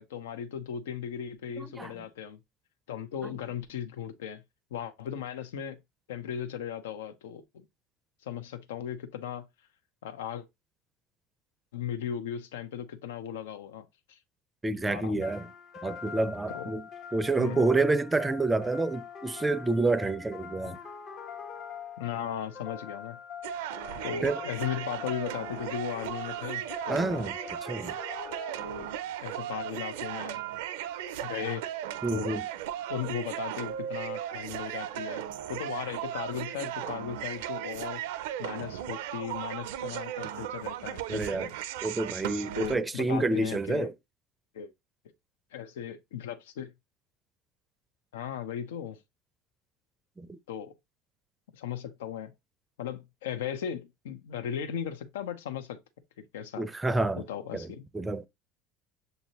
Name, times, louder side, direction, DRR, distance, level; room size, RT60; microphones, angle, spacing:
voice 1, 0.0-2.4 2.9-4.4 4.7-5.8 6.1-7.7 8.2-9.4 10.0-10.4 11.7-14.2 14.9-15.2 16.5-16.7 17.4-17.6 20.7-20.8 22.0-23.2 24.0-27.2 28.6-28.9 29.2-30.4 31.2-31.7 32.1-32.4 32.9-35.2 35.5-38.0 38.4-41.5 42.5-43.9 44.5-44.7 45.5-46.7 48.1-49.0 50.5-50.7 51.5-52.3 52.8-55.8 56.3-56.7 57.3-57.8, left 9 dB, 85° left, 0.5 m, -37 dB
voice 2, 1.6-1.9 3.2-3.3 14.6-15.5 15.8-16.9 17.1-20.8 24.2-24.4 26.9-27.4 27.6-28.0 32.0-32.5 41.1-41.5 41.8-43.9 50.2-50.4 56.6-57.2 57.5-58.3, right 2 dB, 15° right, 0.4 m, -28 dB
sound 1, 15.2-29.1, left 7 dB, 55° left, 1.0 m, -44 dB
sound 2, 23.4-42.7, right 11 dB, 80° right, 0.4 m, -36 dB
6.6 x 2.6 x 2.9 m
hypercardioid pair, 90°, 0 cm